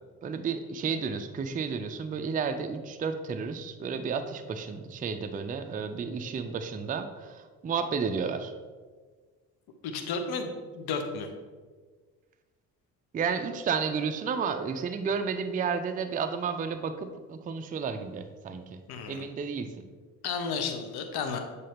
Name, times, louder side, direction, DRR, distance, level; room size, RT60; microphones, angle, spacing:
voice 1, 0.2-8.5 13.1-18.8 19.1-19.9, right 5 dB, 20° right, 8 dB, 0.4 m, -32 dB
voice 2, 9.8-11.3 18.9-19.2 20.2-21.4, left 5 dB, 55° left, 6 dB, 0.9 m, -33 dB
7.5 x 4.0 x 3.5 m, 1.5 s
figure-of-eight pair, 45°, 44 cm